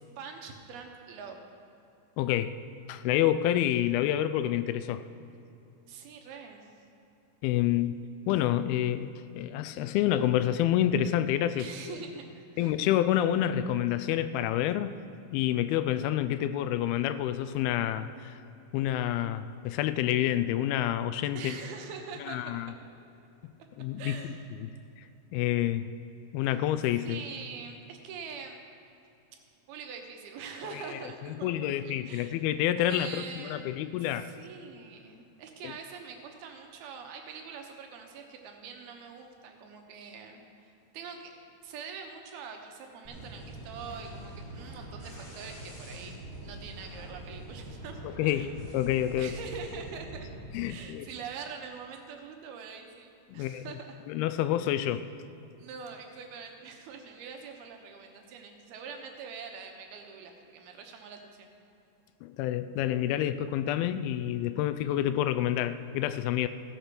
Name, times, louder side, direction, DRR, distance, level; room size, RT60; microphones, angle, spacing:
voice 1, 0.2-1.4 5.9-6.7 11.6-12.8 21.3-22.6 24.0-24.5 26.4-26.5 27.0-28.6 29.7-32.4 32.8-41.3 41.6-48.6 49.2-50.3 50.7-54.0 54.8-54.9 55.6-61.5, right 5 dB, 85° right, 3 dB, 3.0 m, -44 dB
voice 2, 2.2-2.6 2.9-5.0 7.4-11.7 12.6-14.9 15.3-18.4 18.7-21.6 22.3-22.7 23.8-24.2 24.6-24.7 25.3-25.9 26.3-27.2 30.7-30.8 31.4-34.3 35.6-35.7 48.0-49.3 50.5-51.1 53.3-53.7 54.1-55.1 62.2-66.5, left 12 dB, 85° left, 12 dB, 2.4 m, -28 dB
sound 1, 43.0-50.7, right 1 dB, 15° left, 1.1 m, -44 dB
16.0 x 6.8 x 6.0 m, 2.8 s
omnidirectional pair, 4.4 m